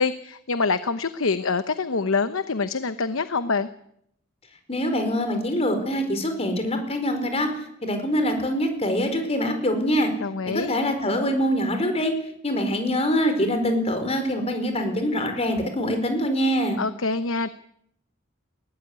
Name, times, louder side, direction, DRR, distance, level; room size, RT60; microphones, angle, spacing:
voice 1, 0.0-3.7 10.2-10.8 16.8-17.5, left 4 dB, 75° left, 12 dB, 0.9 m, -25 dB
voice 2, 4.7-7.5 7.8-10.1 10.5-12.1 12.4-16.8, equal, 30° left, 6 dB, 4.8 m, -24 dB
21.0 x 17.0 x 9.7 m, 0.74 s
head